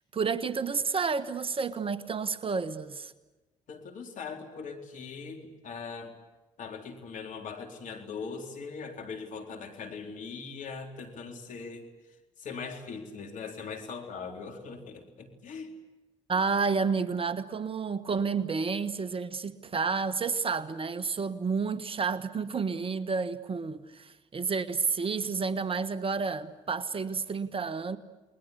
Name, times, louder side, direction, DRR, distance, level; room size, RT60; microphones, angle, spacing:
voice 1, 0.1-3.1 16.3-28.0, right 5 dB, 40° right, 1.5 m, -30 dB
voice 2, 3.7-6.2 6.6-11.9 12.4-15.7, left 5 dB, 60° left, 3.9 m, -40 dB
30.0 x 21.5 x 8.4 m
hypercardioid pair, 55°, 15 cm